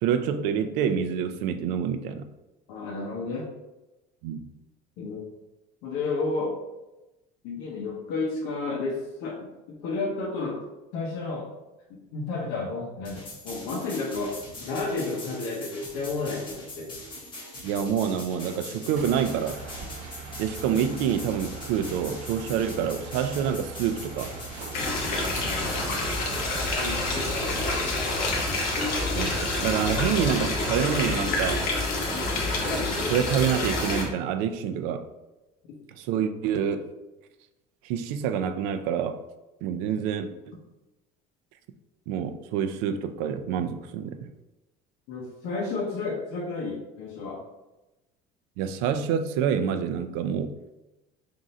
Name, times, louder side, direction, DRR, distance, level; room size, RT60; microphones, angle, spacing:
voice 1, 0.0-2.3 4.2-4.4 17.6-19.6 20.4-24.3 29.2-31.6 33.1-35.0 36.0-36.9 37.8-39.2 39.6-40.6 42.1-44.3 48.6-50.6, right 8 dB, 90° right, 9 dB, 0.4 m, -27 dB
voice 2, 2.7-3.4 5.0-5.2 5.8-6.5 7.4-9.5 9.8-10.6 10.9-11.5 11.9-16.9 25.4-26.1 26.8-27.9 32.3-32.5 45.1-47.4, left 3 dB, 75° left, -2 dB, 0.9 m, -32 dB
sound 1, 13.0-26.8, left 1 dB, 25° left, 1.2 m, -42 dB
sound 2, 18.9-31.7, right 5 dB, 50° right, 1.0 m, -41 dB
sound 3, 24.7-34.0, left 2 dB, 55° left, 1.0 m, -27 dB
3.7 x 2.6 x 4.2 m, 1.0 s
cardioid pair, 175°, 17 cm